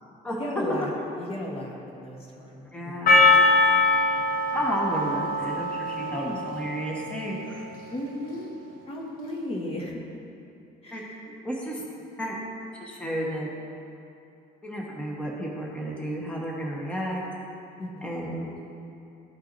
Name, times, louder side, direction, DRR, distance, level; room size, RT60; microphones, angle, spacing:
voice 1, 0.4-0.9 1.2-2.7 3.0-3.3 6.0-6.4 7.9-8.5 8.9-9.9 10.8-11.2 17.8-18.1, left 1 dB, 35° left, -2 dB, 1.1 m, -35 dB
voice 2, 2.7-3.2 4.5-7.7 10.9-11.0 11.4-11.8 12.2-12.4 12.7-13.5 14.6-17.2 18.0-18.5, equal, 5° left, -3 dB, 1.1 m, -32 dB
Percussion, 3.1-7.4, left 2 dB, 60° left, 0.8 m, -22 dB
13.0 x 4.5 x 2.6 m, 2.7 s
cardioid pair, 110°, 17 cm